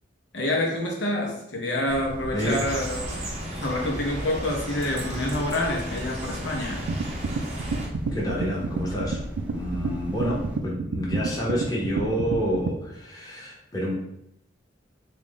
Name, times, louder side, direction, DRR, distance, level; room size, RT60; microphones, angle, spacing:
voice 1, 0.3-3.2 3.6-6.8, left 1 dB, 65° left, -1 dB, 0.7 m, -27 dB
sound 1, 1.9-10.6, equal, 5° right, 0.3 m, -39 dB
sound 2, 2.4-7.9, right 1 dB, 35° right, 0.7 m, -35 dB
sound 3, 6.9-12.8, right 3 dB, 90° right, 0.4 m, -30 dB
voice 2, 8.1-9.2 9.5-13.9, equal, 20° left, -4 dB, 0.8 m, -28 dB
3.6 x 2.4 x 3.6 m, 0.79 s
head